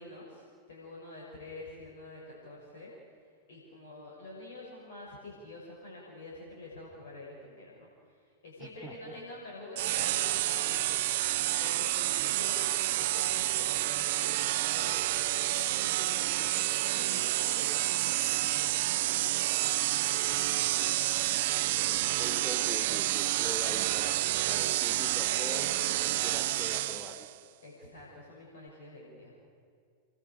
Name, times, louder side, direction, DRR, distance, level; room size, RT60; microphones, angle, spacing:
voice 1, 0.0-2.9 3.5-10.9 11.4-14.4 14.7-19.3 27.6-29.3, left 2 dB, 60° left, -3 dB, 6.0 m, -47 dB
voice 2, 8.6-9.2 20.6-20.7 21.7-27.3, equal, ahead, 1 dB, 3.1 m, -43 dB
sound 1, 9.8-27.3, right 15 dB, 50° right, 0.6 m, -29 dB
27.0 x 22.0 x 6.4 m, 2.2 s
figure-of-eight pair, 90°, 0 cm